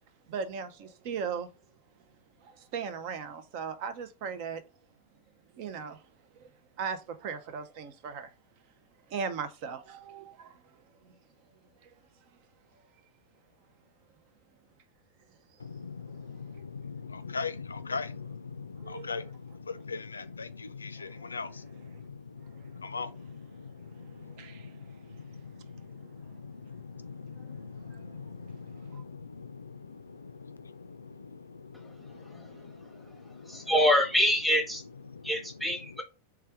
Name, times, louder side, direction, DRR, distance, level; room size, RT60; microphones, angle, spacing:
voice 1, 0.3-1.5 2.4-4.6 5.6-6.1 6.3-6.5 6.8-8.3 9.1-11.1 11.8-11.9 18.8-19.2 20.9-21.2 22.5-22.6 23.9-25.0 25.3-25.4 27.4-28.5 28.8-29.0, right 6 dB, 45° right, 0.6 m, -39 dB
voice 2, 15.6-33.7 35.0-36.0, left 4 dB, 75° left, 0.4 m, -41 dB
voice 3, 33.5-34.8 35.2-36.0, equal, ahead, 0.9 m, -25 dB
3.5 x 3.3 x 4.5 m
figure-of-eight pair, 90°, 0 cm